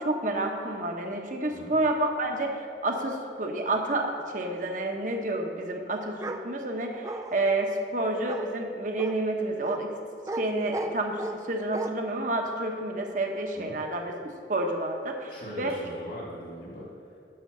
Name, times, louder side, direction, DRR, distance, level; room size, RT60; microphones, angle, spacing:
voice 1, 0.0-9.9 10.4-11.2 11.5-14.1 14.5-15.3 15.6-15.7, right 2 dB, 45° right, 2 dB, 0.9 m, -29 dB
Bark, 6.2-6.4 7.0-7.6 8.3-8.5 9.0-9.1 9.6-9.8 10.3-10.4 10.7-11.4 11.7-11.9, right 2 dB, 15° right, 0.3 m, -34 dB
voice 2, 15.3-17.2, equal, 65° left, -5 dB, 2.1 m, -41 dB
8.9 x 5.9 x 6.7 m, 2.5 s
head